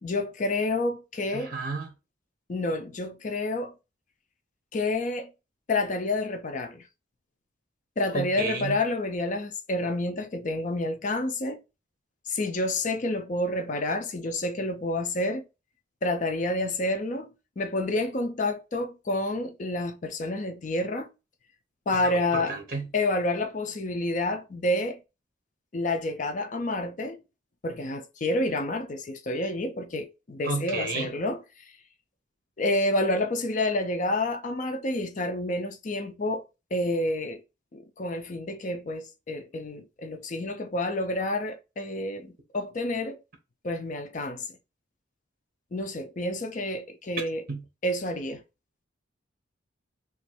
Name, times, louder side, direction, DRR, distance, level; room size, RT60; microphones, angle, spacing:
voice 1, 0.0-1.5 2.5-3.7 4.7-5.3 5.7-6.8 8.0-11.6 12.3-15.4 16.0-17.3 17.6-21.1 21.9-22.5 22.9-25.0 25.7-27.2 27.6-31.7 32.6-36.4 36.7-37.4 37.7-43.2 43.6-44.5 45.7-47.4 47.8-48.4, left 2 dB, 40° left, 0.5 m, -29 dB
voice 2, 1.3-1.9 8.1-8.8 21.9-22.9 30.4-31.1 47.5-47.6, right 3 dB, 50° right, 1.1 m, -32 dB
3.0 x 2.5 x 4.2 m
head